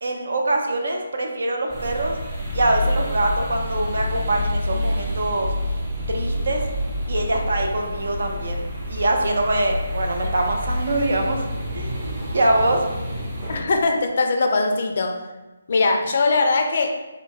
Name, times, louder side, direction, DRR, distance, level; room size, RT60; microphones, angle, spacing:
voice 1, 0.0-2.1 2.5-5.5 6.1-6.6 7.1-11.4 11.7-12.8, right 2 dB, 55° right, 2 dB, 0.6 m, -23 dB
sound 1, 1.7-13.6, left 1 dB, 25° right, 0.9 m, -28 dB
voice 2, 13.5-15.2 15.7-16.9, left 3 dB, 45° left, 3 dB, 0.4 m, -21 dB
3.5 x 2.2 x 3.8 m, 1.1 s
figure-of-eight pair, 145°, 0 cm